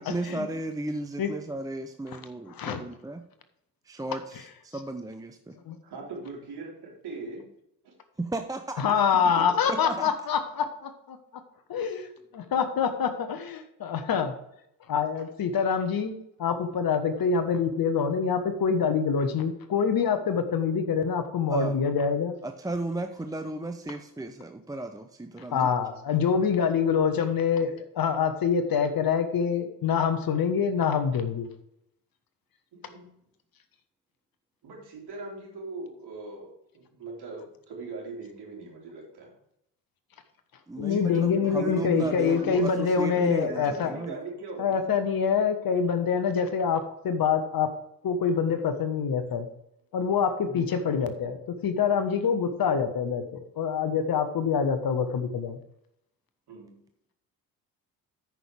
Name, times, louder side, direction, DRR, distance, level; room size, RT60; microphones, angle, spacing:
voice 1, 0.1-3.2 3.8-5.6 8.2-8.8 9.7-10.1 21.5-21.8 22.4-25.7 40.7-44.2, right 2 dB, 10° right, 7 dB, 0.7 m, -34 dB
voice 2, 2.5-2.8 5.7-5.8 8.8-11.2 11.7-12.1 12.3-14.4 14.9-22.4 25.5-31.5 40.8-43.9 44.6-47.7 48.0-49.5 49.9-51.4 51.6-55.6, left 6 dB, 45° left, 9 dB, 1.4 m, -26 dB
voice 3, 5.8-7.4 7.8-7.9 9.3-9.5 32.7-33.0 34.6-39.3 40.9-44.8 50.4-50.6 56.5-56.8, right 3 dB, 55° right, -2 dB, 3.9 m, -40 dB
13.5 x 6.1 x 3.5 m, 0.78 s
figure-of-eight pair, 45°, 48 cm